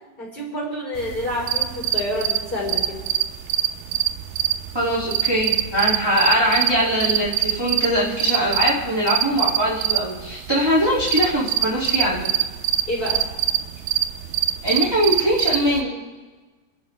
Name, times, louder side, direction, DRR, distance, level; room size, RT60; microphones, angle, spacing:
voice 1, 0.2-3.0 12.9-13.3, left 1 dB, 15° left, -5 dB, 4.0 m, -28 dB
sound 1, 1.0-15.8, right 12 dB, 85° right, 2.5 m, -25 dB
voice 2, 4.7-12.2 14.6-15.9, equal, 15° right, -7 dB, 0.8 m, -21 dB
29.5 x 11.0 x 3.2 m, 1.3 s
omnidirectional pair, 4.5 m